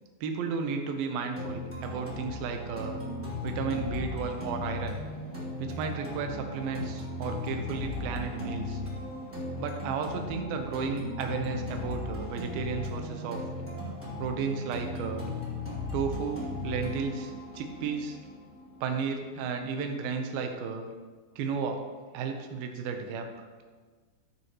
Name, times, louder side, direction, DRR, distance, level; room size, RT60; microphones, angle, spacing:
voice 1, 0.2-3.0 3.4-5.0 5.6-8.8 9.6-13.4 14.2-15.3 15.9-18.2 18.8-20.9 21.4-21.8 22.1-23.5, right 5 dB, 75° right, 4 dB, 2.4 m, -33 dB
sound 1, 1.4-19.3, left 2 dB, 5° right, 1.9 m, -37 dB
14.5 x 6.9 x 3.1 m, 1.4 s
omnidirectional pair, 4.9 m